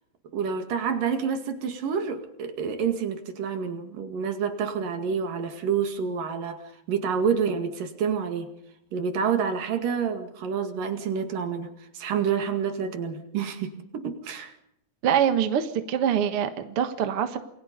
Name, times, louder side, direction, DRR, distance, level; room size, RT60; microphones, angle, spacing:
voice 1, 0.3-8.5 8.9-14.5, right 6 dB, 65° right, 7 dB, 3.7 m, -28 dB
voice 2, 15.0-17.4, right 9 dB, 50° right, 8 dB, 1.9 m, -24 dB
28.5 x 22.0 x 5.3 m, 0.77 s
omnidirectional pair, 4.2 m